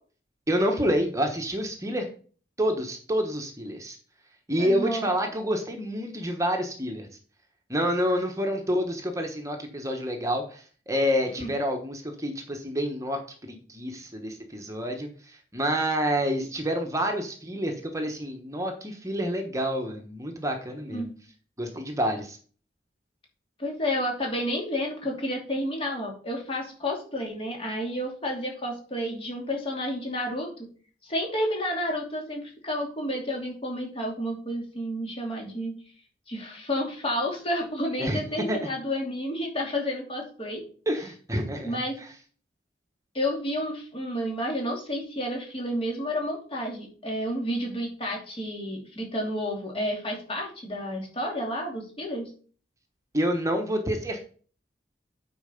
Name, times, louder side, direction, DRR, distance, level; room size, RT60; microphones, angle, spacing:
voice 1, 0.5-2.1 2.6-4.0 4.5-7.1 7.7-21.1 21.6-22.4 38.0-38.2 38.5-38.7 40.9-41.8 53.1-54.3, equal, 20° right, 4 dB, 1.2 m, -28 dB
voice 2, 4.6-5.1 11.4-11.5 20.9-21.1 23.6-30.5 31.0-35.8 36.3-40.6 41.6-42.0 43.1-52.3, equal, 30° left, 0 dB, 2.8 m, -30 dB
9.0 x 4.8 x 5.2 m, 0.41 s
head